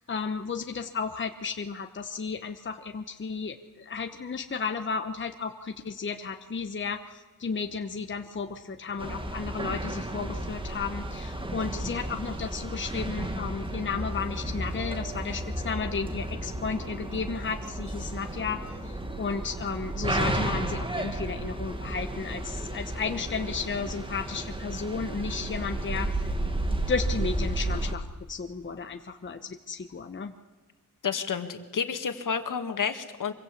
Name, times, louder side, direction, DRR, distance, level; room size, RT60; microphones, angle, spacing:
voice 1, 0.0-26.1 26.9-30.3, left 5 dB, 35° left, 6 dB, 1.0 m, -33 dB
sound 1, 9.0-27.9, right 1 dB, 15° right, 1.8 m, -33 dB
voice 2, 31.0-33.3, left 6 dB, 70° left, 7 dB, 2.0 m, -30 dB
25.0 x 23.0 x 8.5 m, 1.4 s
wide cardioid pair, 160°, 33 cm